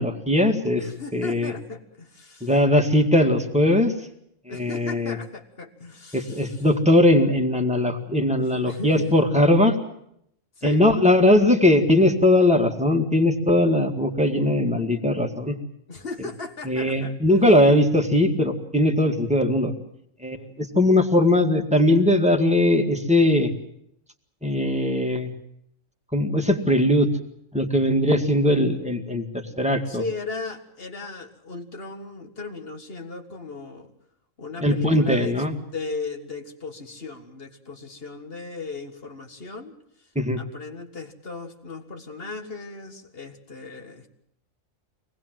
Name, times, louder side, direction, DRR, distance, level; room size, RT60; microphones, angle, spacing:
voice 1, 0.0-0.9 1.1-1.5 2.4-3.9 4.5-5.2 6.1-9.8 10.6-15.6 16.7-19.7 20.2-23.5 24.4-25.3 26.1-27.1 27.5-30.0 34.6-35.6 40.2-40.4, left 1 dB, 5° right, 3 dB, 1.8 m, -20 dB
voice 2, 0.8-2.5 4.5-6.6 8.5-9.1 10.6-10.9 15.9-17.1 29.9-33.9 34.4-39.7 40.4-44.1, left 3 dB, 50° left, 6 dB, 2.0 m, -36 dB
24.5 x 19.5 x 7.6 m, 0.73 s
omnidirectional pair, 1.3 m